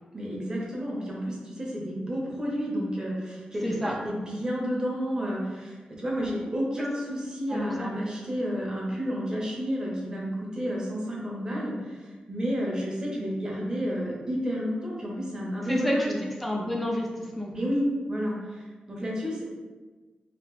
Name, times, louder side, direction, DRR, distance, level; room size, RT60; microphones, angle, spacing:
voice 1, 0.1-16.2 17.5-18.6 18.9-19.4, equal, 25° right, -4 dB, 0.9 m, -31 dB
voice 2, 3.6-3.9 6.8-6.9 7.5-7.9 15.7-16.1 16.4-17.5, left 1 dB, ahead, -2 dB, 0.5 m, -29 dB
3.0 x 2.8 x 3.1 m, 1.3 s
wide cardioid pair, 125°, 3 cm